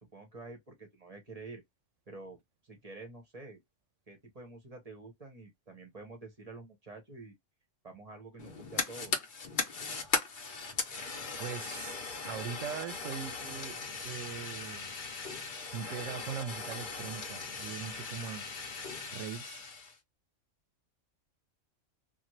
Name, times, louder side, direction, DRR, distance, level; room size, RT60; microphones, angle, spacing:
voice 1, 0.0-1.6 2.1-3.6 4.1-7.3 7.8-9.1, right 3 dB, 35° right, 0.8 m, -48 dB
Fire, 8.4-19.9, left 4 dB, 50° left, 0.8 m, -38 dB
voice 2, 11.4-11.9 12.2-13.8 14.0-14.9 15.3-15.4 15.7-18.5 19.1-19.6, right 8 dB, 80° right, 0.9 m, -41 dB
2.7 x 2.3 x 2.9 m
omnidirectional pair, 1.3 m